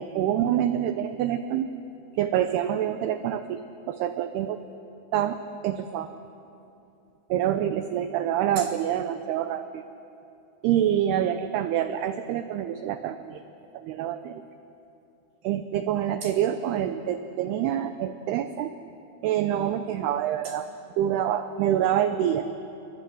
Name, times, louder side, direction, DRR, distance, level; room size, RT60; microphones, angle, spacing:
voice 1, 0.0-1.7 2.2-3.6 3.9-4.6 5.1-6.1 7.3-9.8 10.6-13.4 13.7-14.4 15.4-18.7 19.2-20.7 21.0-22.4, right 10 dB, 90° right, 10 dB, 2.3 m, -26 dB
28.5 x 23.0 x 7.7 m, 2.9 s
omnidirectional pair, 5.6 m